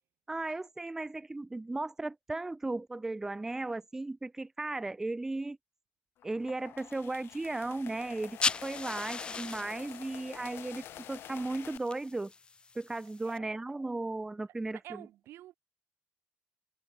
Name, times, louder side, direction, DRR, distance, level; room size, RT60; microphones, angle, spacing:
voice 1, 0.3-5.6 6.2-12.3 12.7-15.1, right 2 dB, 10° right, 0.5 m, -36 dB
sound 1, 6.2-11.8, left 12 dB, 70° left, 1.8 m, -48 dB
sound 2, 8.2-13.4, left 4 dB, 25° left, 0.7 m, -39 dB
voice 2, 14.7-15.5, right 14 dB, 80° right, 1.1 m, -49 dB
cardioid pair, 135°, 4 cm